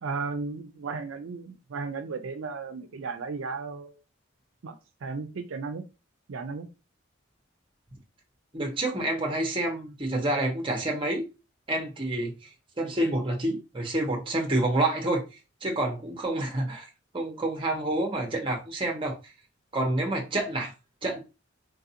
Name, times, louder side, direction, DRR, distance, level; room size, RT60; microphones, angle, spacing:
voice 1, 0.0-3.9 4.6-4.7 5.0-5.8 6.3-6.7, right 4 dB, 80° right, 0.5 m, -35 dB
voice 2, 8.5-11.3 11.7-12.5 12.8-15.2 15.6-16.9 17.1-19.2 19.7-20.7 21.0-21.2, right 1 dB, 25° right, 0.8 m, -28 dB
3.9 x 2.5 x 2.7 m
head